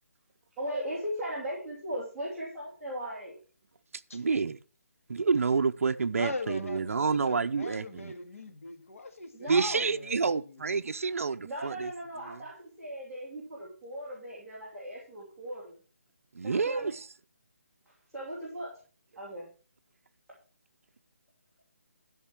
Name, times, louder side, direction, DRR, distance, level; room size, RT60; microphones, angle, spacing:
voice 1, 0.6-3.3 9.3-9.8 11.4-15.7 16.4-16.9 18.1-18.7 19.2-19.5, equal, ahead, 2.3 m, -38 dB
voice 2, 4.1-4.6 5.1-8.1 9.5-11.9 12.3-12.4 16.3-17.1, right 4 dB, 65° right, 0.6 m, -28 dB
voice 3, 6.2-10.6, left 3 dB, 65° left, 2.2 m, -41 dB
12.5 x 5.3 x 5.9 m
hypercardioid pair, 175°, 8 cm